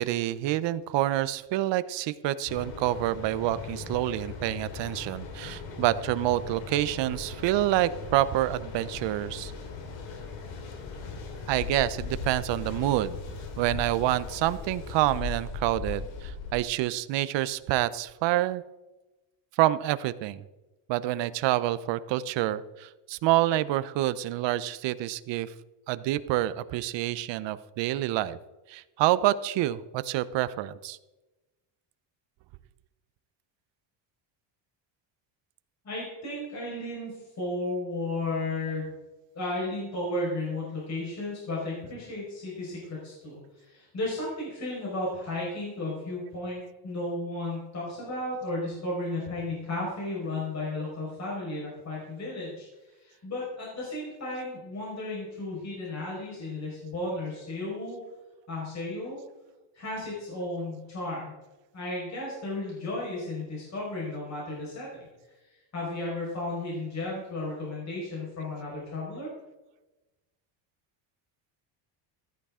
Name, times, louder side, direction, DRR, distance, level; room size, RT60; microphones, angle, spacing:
voice 1, 0.0-9.5 11.5-13.2 13.6-18.6 19.6-20.4 20.9-25.5 25.9-28.4 28.7-31.0, right 14 dB, 60° right, 15 dB, 0.7 m, -27 dB
Mechanical fan, 2.5-16.5, left 4 dB, 65° left, 2.7 m, -39 dB
voice 2, 35.8-38.9 39.3-52.7 53.0-58.0 58.5-59.2 59.7-61.3 61.7-65.1 65.4-69.3, left 2 dB, 35° left, -5 dB, 4.9 m, -34 dB
14.5 x 12.0 x 3.7 m, 1.1 s
cardioid pair, 145°, 49 cm